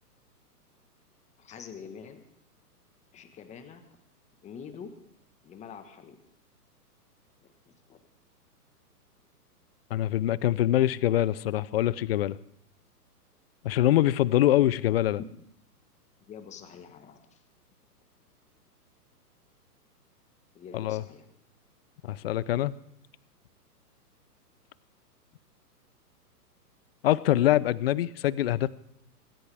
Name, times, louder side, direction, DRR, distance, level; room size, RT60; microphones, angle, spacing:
voice 1, 1.4-2.2 3.1-3.8 4.4-4.9 5.4-6.2 7.7-8.0 16.3-17.4 20.5-21.3, left 7 dB, 15° left, 8 dB, 1.3 m, -46 dB
voice 2, 9.9-12.4 13.6-15.2 20.7-21.0 22.0-22.7 27.0-28.7, left 13 dB, 40° left, 20 dB, 0.5 m, -24 dB
25.5 x 13.0 x 3.4 m, 0.72 s
hypercardioid pair, 135°, 47 cm